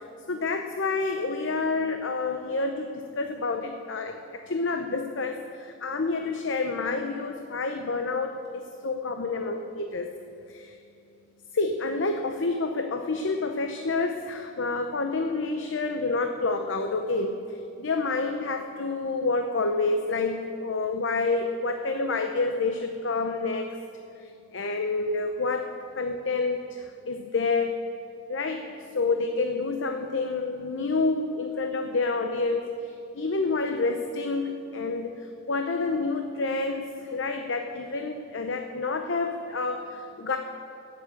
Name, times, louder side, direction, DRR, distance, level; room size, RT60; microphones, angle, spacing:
voice 1, 0.3-10.1 10.5-10.7 11.5-23.8 24.2-27.8 28.3-40.4, left 3 dB, 70° left, 5 dB, 0.7 m, -28 dB
15.5 x 7.0 x 8.4 m, 2.6 s
head